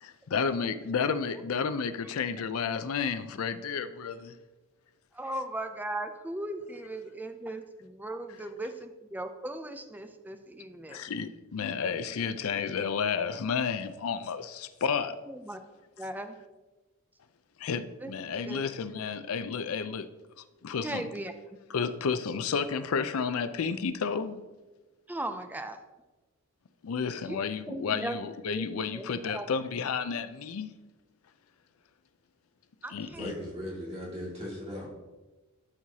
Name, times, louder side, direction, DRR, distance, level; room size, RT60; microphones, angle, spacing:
voice 1, 0.0-4.4 10.9-15.2 17.6-20.1 20.6-21.0 21.7-24.4 26.8-30.7 32.9-33.3, left 6 dB, 75° left, 0.4 m, -31 dB
voice 2, 5.1-11.1 15.3-15.6 16.0-16.3 18.0-18.1 18.4-18.6 20.8-21.3 25.1-25.8 27.2-27.4 27.7-28.2 28.5-28.6 28.9-29.5 32.8-33.3, right 1 dB, 10° right, 0.4 m, -37 dB
voice 3, 33.1-34.9, left 1 dB, 30° right, 2.3 m, -38 dB
12.0 x 4.7 x 2.8 m
head